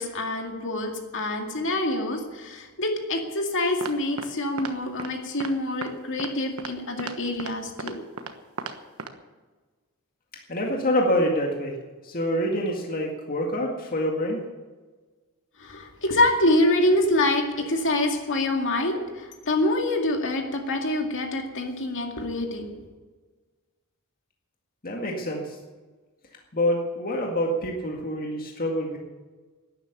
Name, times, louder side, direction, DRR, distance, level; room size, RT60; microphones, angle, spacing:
voice 1, 0.0-8.0 15.6-22.9, left 1 dB, 60° left, 3 dB, 2.2 m, -26 dB
sound 1, 3.8-4.3 4.6-4.7 5.0-5.1 5.4-5.5 5.8-5.9 6.2-6.3 6.6-6.7 7.0-7.1 7.4-7.5 7.8-8.3 8.6-8.7 9.0-9.1, right 4 dB, 75° right, 1.3 m, -34 dB
voice 2, 10.5-11.7 12.0-14.4 24.8-25.6 26.5-29.0, equal, 40° left, 0 dB, 2.0 m, -26 dB
12.0 x 10.5 x 9.0 m, 1.3 s
head